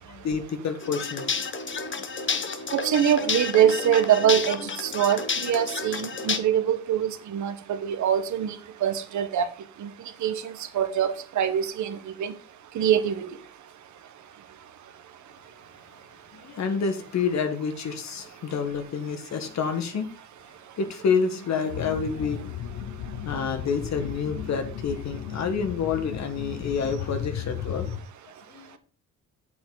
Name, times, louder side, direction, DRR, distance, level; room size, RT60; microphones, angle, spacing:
voice 1, 0.1-1.4 16.3-20.1 20.8-22.6 23.2-27.9 28.5-28.7, left 5 dB, 65° left, 1.9 m, -28 dB
sound 1, 0.8-6.4, left 5 dB, 40° left, 1.3 m, -30 dB
voice 2, 2.7-8.6 8.8-9.5 9.8-9.9 10.2-12.3 12.7-13.4, right 9 dB, 70° right, 1.3 m, -24 dB
sound 2, 21.7-28.0, left 9 dB, 90° left, 1.1 m, -35 dB
8.3 x 7.7 x 4.0 m
cardioid pair, 90°, 30 cm